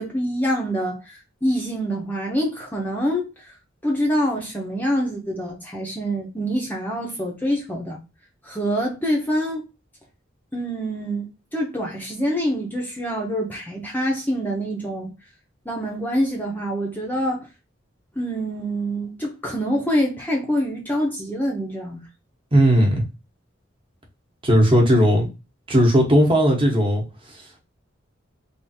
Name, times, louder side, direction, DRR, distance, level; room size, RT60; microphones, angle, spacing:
voice 1, 0.0-3.5 3.8-8.0 8.4-9.7 10.5-15.1 15.7-17.5 18.2-22.0, equal, 10° left, 0.8 m, -25 dB
voice 2, 22.5-23.0 24.4-25.3 25.7-27.0, equal, 25° right, 1.1 m, -16 dB
3.5 x 2.5 x 4.2 m
head